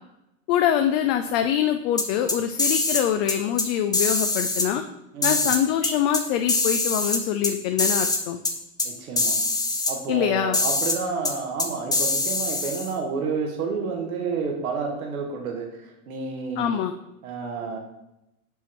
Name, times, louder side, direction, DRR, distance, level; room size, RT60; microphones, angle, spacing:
voice 1, 0.5-4.8 5.2-8.4 10.1-10.6 16.6-16.9, left 10 dB, 55° left, 7 dB, 0.5 m, -24 dB
sound 1, 2.0-3.0 3.3-3.7 3.9-4.7 5.2-6.2 6.5-7.5 7.8-8.2 8.4-8.5 8.8-8.9 9.2-9.9 10.5-11.0 11.2-11.3 11.6-12.9, left 2 dB, 10° left, 0.7 m, -23 dB
voice 2, 5.1-5.6 8.8-9.3 9.9-16.8 17.2-17.8, right 5 dB, 85° right, 1 dB, 1.3 m, -30 dB
5.9 x 5.4 x 3.1 m, 0.87 s
hypercardioid pair, 100°, 42 cm